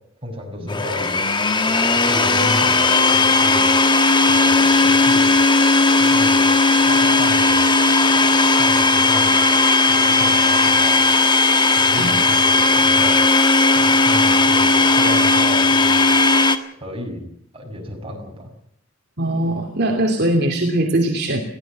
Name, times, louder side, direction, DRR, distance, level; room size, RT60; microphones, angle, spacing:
voice 1, 0.2-1.2 1.7-3.7 4.3-5.4 6.0-7.7 8.2-9.5 9.9-11.1 11.7-13.2 13.7-16.1 16.7-17.3 17.5-18.5, equal, 25° right, 2 dB, 6.3 m, -32 dB
Domestic sounds home sounds, 0.7-16.6, left 3 dB, 20° left, 1.5 m, -16 dB
voice 2, 19.2-21.4, right 1 dB, 50° right, 2 dB, 2.9 m, -20 dB
22.0 x 16.5 x 7.5 m, 0.67 s
head